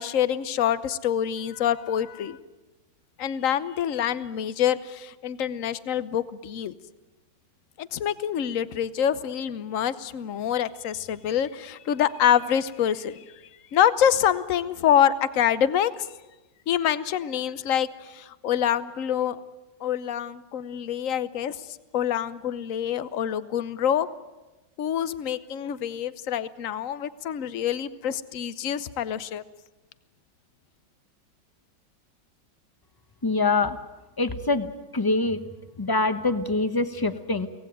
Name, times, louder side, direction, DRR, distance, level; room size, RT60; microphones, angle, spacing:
voice 1, 0.0-2.4 3.2-6.7 7.8-13.2 13.7-16.1 16.7-19.4 19.8-21.7 21.9-24.1 24.8-29.4, left 9 dB, 55° left, 15 dB, 1.2 m, -26 dB
voice 2, 33.2-33.8 34.2-34.7 34.9-35.4 35.8-37.5, left 3 dB, 15° left, 10 dB, 0.8 m, -24 dB
24.0 x 18.0 x 9.2 m, 1.1 s
omnidirectional pair, 1.9 m